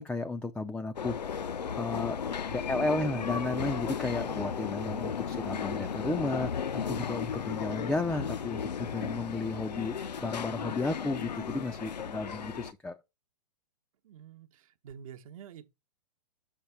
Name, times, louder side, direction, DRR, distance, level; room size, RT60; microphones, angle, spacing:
voice 1, 0.0-1.3 1.8-2.2 2.5-13.0, left 2 dB, 5° left, 0.4 m, -33 dB
sound 1, 1.0-12.7, left 7 dB, 80° left, 0.6 m, -35 dB
voice 2, 14.0-15.7, right 8 dB, 55° right, 1.0 m, -48 dB
7.4 x 4.8 x 4.4 m
figure-of-eight pair, 115°, 21 cm